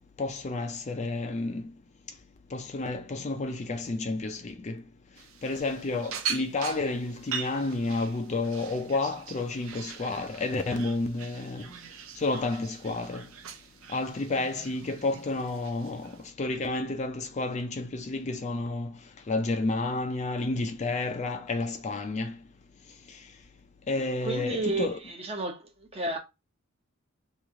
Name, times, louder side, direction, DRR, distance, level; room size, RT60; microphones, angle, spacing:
voice 1, 0.2-1.6 2.5-4.8 5.4-11.7 12.2-13.2 13.9-16.1 16.4-18.9 19.3-22.3 23.9-25.0, left 2 dB, 35° left, 0.4 m, -30 dB
sound 1, 5.2-16.3, right 7 dB, 75° right, 0.5 m, -41 dB
voice 2, 24.2-26.2, right 2 dB, 30° right, 0.7 m, -32 dB
3.0 x 2.5 x 3.6 m
head